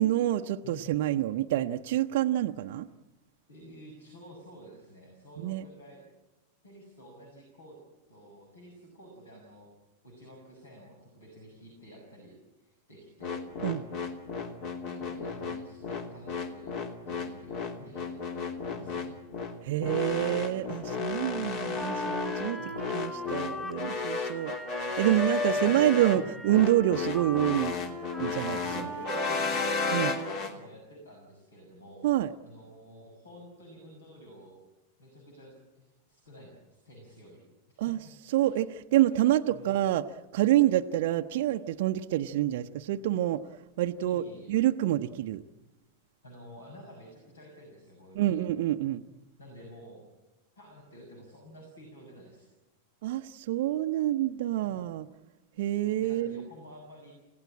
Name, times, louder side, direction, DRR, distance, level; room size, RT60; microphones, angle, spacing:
voice 1, 0.0-2.9 5.4-5.6 13.6-13.9 19.6-27.8 28.2-28.9 29.9-30.1 32.0-32.3 37.8-38.0 38.3-43.5 43.8-44.2 44.5-45.4 48.1-49.0 53.0-55.1 55.6-56.4, right 13 dB, 50° right, 6 dB, 0.7 m, -27 dB
voice 2, 3.5-6.0 6.6-7.8 8.1-9.7 10.0-13.4 14.8-16.7 17.0-18.2 18.7-19.2 22.6-22.8 25.4-26.3 28.7-32.1 32.4-34.6 35.0-37.4 37.7-38.1 38.4-38.6 39.5-39.7 44.0-44.6 46.2-48.4 49.4-50.1 50.5-52.5 54.6-54.8 56.0-57.1, equal, 75° left, 1 dB, 6.2 m, -50 dB
sound 1, 13.2-30.5, left 4 dB, 45° left, 2.7 m, -33 dB
Wind instrument woodwind instrument, 21.7-29.9, left 2 dB, 5° left, 2.4 m, -37 dB
30.0 x 16.5 x 8.7 m, 1.0 s
figure-of-eight pair, 90°, 0 cm